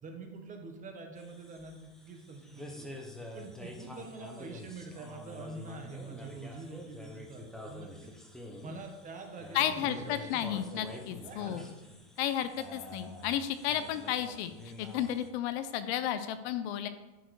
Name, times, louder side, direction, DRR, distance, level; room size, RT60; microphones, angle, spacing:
voice 1, 0.0-2.9 3.3-8.1 8.6-10.4 10.7-10.8 11.2-11.9, right 3 dB, 20° right, 4 dB, 1.0 m, -46 dB
sound 1, 1.2-15.3, left 1 dB, ahead, 0.5 m, -47 dB
voice 2, 9.5-11.7 12.2-14.5 14.8-16.9, left 10 dB, 50° left, 11 dB, 0.6 m, -33 dB
10.0 x 4.6 x 4.6 m, 1.1 s
supercardioid pair, 150°, 41 cm